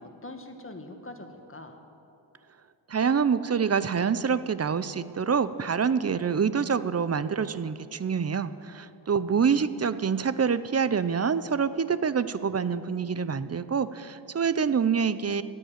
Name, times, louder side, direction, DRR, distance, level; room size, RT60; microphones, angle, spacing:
voice 1, 0.0-1.8 9.0-9.8, left 2 dB, 25° left, 5 dB, 1.3 m, -44 dB
voice 2, 2.9-15.4, right 6 dB, 35° right, 14 dB, 0.4 m, -26 dB
11.5 x 9.2 x 9.0 m, 2.7 s
wide cardioid pair, 85°, 46 cm